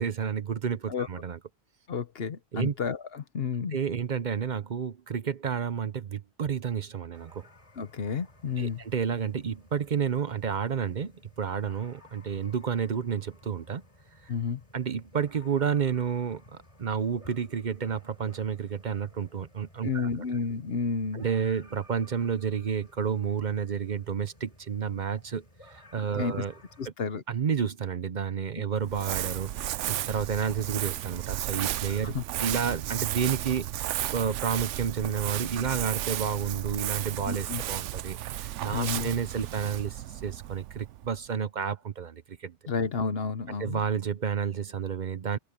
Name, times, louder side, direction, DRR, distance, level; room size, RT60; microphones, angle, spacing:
voice 1, 0.0-1.4 2.5-2.7 3.7-7.5 8.6-13.8 14.2-14.3 14.7-20.1 21.1-26.5 27.3-32.1 32.4-42.6 43.6-45.4, right 7 dB, 45° right, 0.8 m, -30 dB
voice 2, 1.9-3.8 7.8-8.8 14.3-14.6 19.8-21.2 26.2-26.4 26.8-27.2 32.0-32.2 37.3-37.6 38.7-39.1 42.7-43.8, left 5 dB, 55° left, 1.2 m, -31 dB
sound 1, 7.1-26.9, left 1 dB, 30° left, 4.4 m, -56 dB
Crumpling crinkling, 28.8-41.3, right 13 dB, 80° right, 0.9 m, -34 dB
omnidirectional pair, 1.2 m